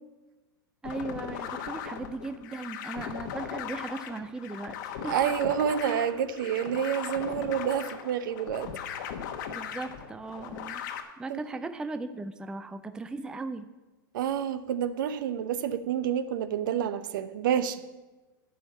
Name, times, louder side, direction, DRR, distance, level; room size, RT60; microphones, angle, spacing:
sound 1, 0.8-11.0, left 8 dB, 55° left, 1.3 m, -38 dB
voice 1, 0.8-4.8 5.0-5.1 9.5-10.8 11.2-13.7, right 3 dB, 5° right, 10 dB, 0.4 m, -37 dB
voice 2, 5.1-8.7 11.3-11.4 14.1-17.8, right 9 dB, 65° right, 12 dB, 0.9 m, -28 dB
12.0 x 5.2 x 8.3 m, 1.2 s
hypercardioid pair, 130°, 12 cm